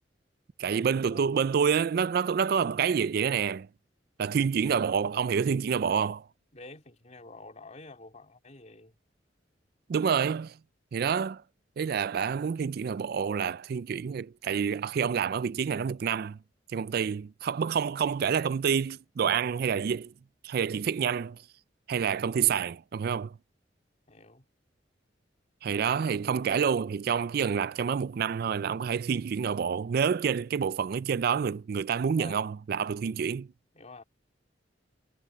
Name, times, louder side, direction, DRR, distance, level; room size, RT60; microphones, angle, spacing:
voice 1, 0.6-3.7 4.2-6.3 9.9-10.6 10.9-11.4 11.8-16.4 16.7-20.1 20.4-21.4 21.9-23.4 25.6-33.5, right 7 dB, 55° right, 0.4 m, -28 dB
voice 2, 6.5-8.9 24.1-24.5 32.1-32.5 33.7-34.0, left 3 dB, 40° left, 3.3 m, -48 dB
head